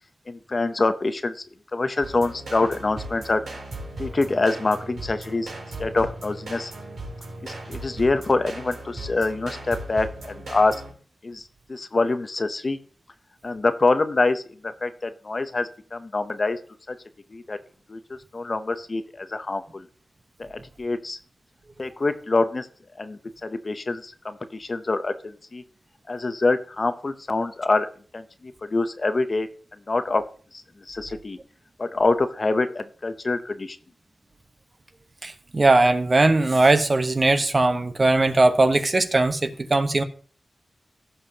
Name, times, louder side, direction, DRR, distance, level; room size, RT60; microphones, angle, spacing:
voice 1, 0.3-1.4 1.7-3.4 4.0-5.5 5.8-6.7 7.4-10.8 11.2-11.4 11.7-12.8 13.4-14.4 14.8-16.6 16.9-17.0 17.3-17.6 17.9-19.8 20.4-21.2 21.8-22.7 23.0-25.6 26.1-28.2 28.7-29.5 29.9-30.2 30.9-31.4 31.8-33.8, left 3 dB, 45° left, 0.7 m, -25 dB
sound 1, 2.0-10.9, right 1 dB, 90° right, 3.3 m, -37 dB
voice 2, 35.2-40.0, right 2 dB, 40° right, 1.0 m, -19 dB
15.5 x 5.7 x 2.8 m
wide cardioid pair, 75°, 0 cm